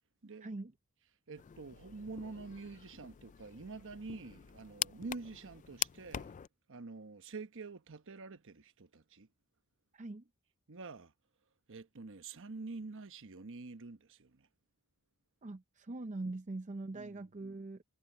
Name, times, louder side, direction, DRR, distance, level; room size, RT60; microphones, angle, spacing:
voice 1, 0.4-0.7 9.9-10.2 15.4-17.8, right 2 dB, 35° right, 0.6 m, -42 dB
voice 2, 1.3-6.3 6.7-9.3 10.7-11.1 11.7-14.5 16.9-17.3, right 3 dB, 60° right, 1.1 m, -47 dB
sound 1, 1.4-6.5, left 11 dB, 35° left, 0.4 m, -43 dB
head